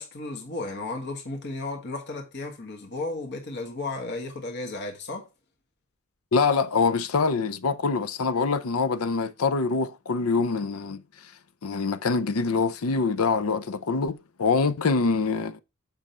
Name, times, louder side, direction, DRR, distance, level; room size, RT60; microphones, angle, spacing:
voice 1, 0.0-5.3, left 2 dB, 50° left, 1.4 m, -34 dB
voice 2, 6.3-11.3 11.6-15.6, left 4 dB, 80° left, 0.6 m, -25 dB
7.6 x 5.3 x 4.3 m
head